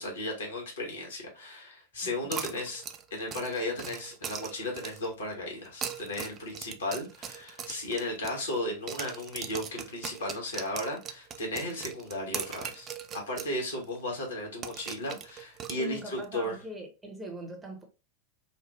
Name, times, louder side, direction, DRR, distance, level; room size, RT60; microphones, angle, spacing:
voice 1, 0.0-2.8 3.1-12.9 13.1-16.6, left 1 dB, 65° left, 1.2 m, -35 dB
voice 2, 2.0-2.6 15.8-17.8, right 1 dB, 15° right, 0.8 m, -42 dB
sound 1, 2.3-5.1 5.7-8.6 8.9-13.6 13.8-13.9 14.6-16.3, right 8 dB, 30° right, 0.3 m, -40 dB
3.2 x 2.0 x 3.0 m
figure-of-eight pair, 90°, 0 cm